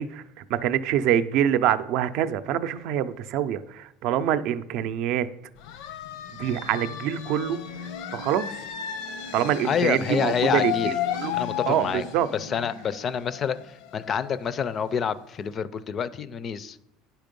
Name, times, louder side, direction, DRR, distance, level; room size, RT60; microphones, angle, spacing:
voice 1, 0.0-5.3 6.3-7.6 8.1-8.5 9.3-11.4 11.7-12.3, right 10 dB, 55° right, 12 dB, 0.5 m, -25 dB
sound 1, 5.6-15.1, left 10 dB, 80° left, 0.7 m, -34 dB
voice 2, 9.6-11.0 11.3-12.0 12.3-16.8, left 7 dB, 30° left, 16 dB, 0.4 m, -28 dB
10.0 x 5.9 x 5.2 m, 0.85 s
cardioid pair, 160°, 0 cm